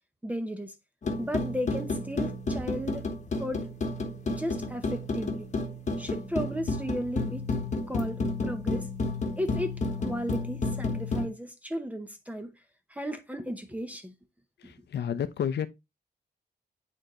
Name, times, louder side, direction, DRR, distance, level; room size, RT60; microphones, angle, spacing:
voice 1, 0.2-0.7 1.2-3.1 3.4-3.7 4.3-5.5 6.0-7.5 7.9-8.9 9.4-12.5 12.9-14.1 14.6-14.7, equal, 10° right, 0.7 m, -35 dB
sound 1, 1.0-11.3, left 3 dB, 40° left, 1.2 m, -31 dB
voice 2, 14.6-15.7, left 8 dB, 65° left, 0.8 m, -31 dB
9.1 x 3.9 x 3.0 m
wide cardioid pair, 155°, 19 cm